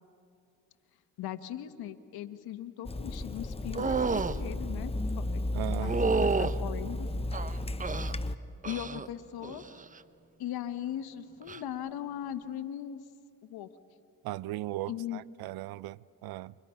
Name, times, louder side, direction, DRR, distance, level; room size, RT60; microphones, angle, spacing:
voice 1, 1.2-5.4 5.8-7.1 8.6-9.8 10.4-13.0 13.4-13.7 14.9-15.2, left 11 dB, 75° left, 1.4 m, -39 dB
Water tap faucet / Sink (filling or washing), 2.8-8.4, left 1 dB, 15° left, 0.9 m, -33 dB
sound 1, 3.7-4.4 5.8-6.6 7.3-8.1 8.6-9.1 9.4-9.9 11.4-11.6, right 4 dB, 20° right, 0.7 m, -30 dB
voice 2, 5.5-6.2 14.2-16.5, right 16 dB, 70° right, 0.6 m, -38 dB
29.5 x 25.5 x 5.8 m
cardioid pair, 80°, 38 cm